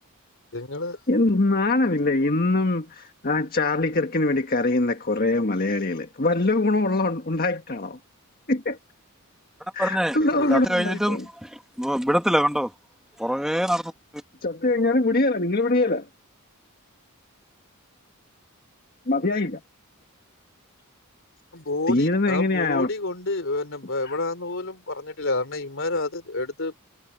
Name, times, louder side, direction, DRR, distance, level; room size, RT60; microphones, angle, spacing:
voice 1, 0.5-1.0 10.3-10.6 21.5-26.8, left 2 dB, 60° left, 3.6 m, -29 dB
voice 2, 1.1-8.0 8.5-8.8 9.7-11.3 14.4-16.1 19.1-19.6 21.9-22.9 24.0-24.2, left 2 dB, 40° left, 1.6 m, -23 dB
voice 3, 9.8-10.2 10.5-11.5 11.8-12.7 13.2-13.8, equal, ahead, 1.3 m, -24 dB
head